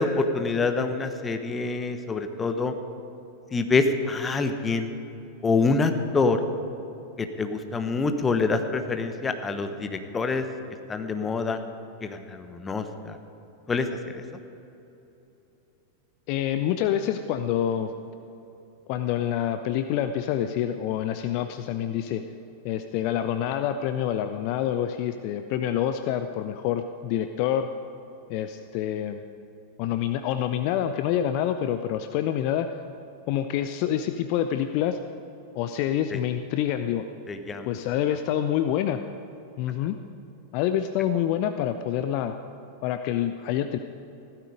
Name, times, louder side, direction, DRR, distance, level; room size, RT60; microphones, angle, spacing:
voice 1, 0.0-2.7 3.5-4.9 5.4-6.4 7.2-10.4 10.9-11.6 12.0-13.2 13.7-13.9 14.1-14.2 36.1-36.2 37.3-37.7, left 4 dB, 15° left, 7 dB, 1.1 m, -26 dB
voice 2, 16.3-17.9 18.9-22.2 22.6-27.7 28.3-29.2 29.8-32.7 33.3-35.0 35.6-37.0 37.7-39.0 39.6-40.0 40.5-42.3 42.8-43.8, left 10 dB, 45° left, 9 dB, 0.6 m, -27 dB
15.5 x 13.5 x 5.1 m, 3.0 s
figure-of-eight pair, 90°, 0 cm